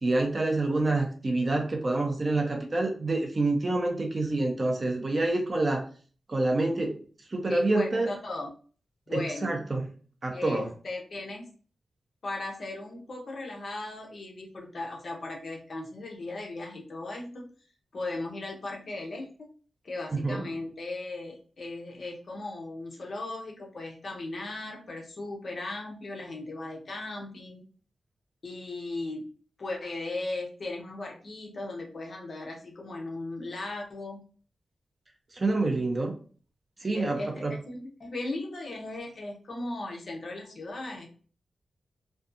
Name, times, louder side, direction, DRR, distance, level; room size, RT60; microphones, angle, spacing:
voice 1, 0.0-5.8 6.3-7.0 7.3-8.1 9.1-9.9 10.2-10.7 20.1-20.4 35.4-36.1 36.8-37.6, right 2 dB, 30° right, 2 dB, 0.4 m, -27 dB
voice 2, 7.5-8.5 9.1-9.5 10.3-11.5 12.2-17.5 17.9-19.5 19.8-27.6 28.4-29.3 29.6-34.2 36.9-41.1, left 2 dB, 45° left, 1 dB, 0.6 m, -37 dB
2.5 x 2.2 x 2.4 m, 0.40 s
wide cardioid pair, 170°, 0 cm